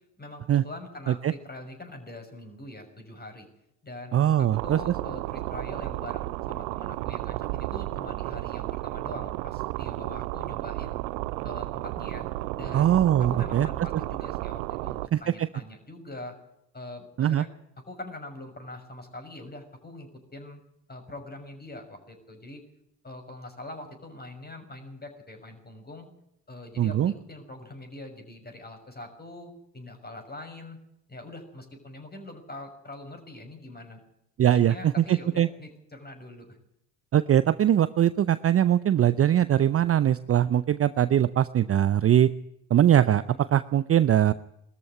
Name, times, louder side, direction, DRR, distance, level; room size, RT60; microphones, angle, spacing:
voice 1, 0.2-3.5 3.8-11.0 11.4-12.3 12.5-16.4 16.7-17.5 17.9-20.6 20.9-22.6 23.0-26.1 26.5-30.8 31.1-34.0 34.4-36.6 43.3-43.4, left 2 dB, 20° left, 4 dB, 6.4 m, -43 dB
voice 2, 4.1-4.8 12.7-13.7 15.1-15.5 17.2-17.4 26.8-27.1 34.4-35.5 37.1-42.3 42.7-44.3, right 11 dB, 30° right, 15 dB, 0.7 m, -21 dB
sound 1, 4.5-15.1, right 19 dB, 65° right, 0.7 m, -33 dB
20.5 x 13.5 x 9.6 m, 0.81 s
hypercardioid pair, 60°, 48 cm